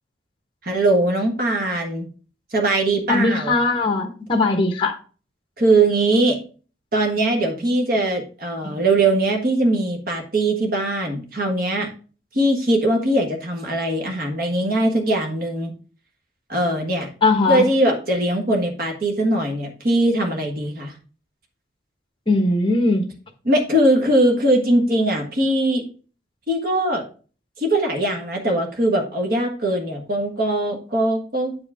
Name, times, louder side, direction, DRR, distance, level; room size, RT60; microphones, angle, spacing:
voice 1, 0.6-2.1 2.5-3.6 5.6-6.4 6.9-11.9 12.3-15.7 16.5-17.1 17.5-21.0 23.4-25.8 26.5-27.0 27.6-31.6, right 1 dB, 50° right, 2 dB, 1.5 m, -21 dB
voice 2, 3.1-5.0 8.6-8.7 17.2-17.6 22.3-23.1, left 3 dB, 25° left, 5 dB, 1.2 m, -19 dB
8.4 x 4.9 x 3.6 m, 0.38 s
head